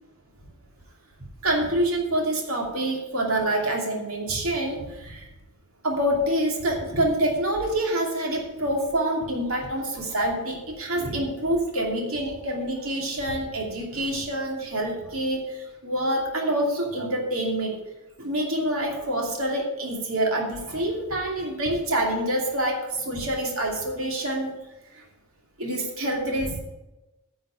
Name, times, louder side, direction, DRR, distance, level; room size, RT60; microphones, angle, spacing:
voice 1, 1.4-5.3 5.8-17.7 18.2-24.5 24.9-25.0 25.6-26.6, right 1 dB, 80° right, 0 dB, 2.7 m, -26 dB
10.0 x 6.2 x 8.9 m, 1.0 s
head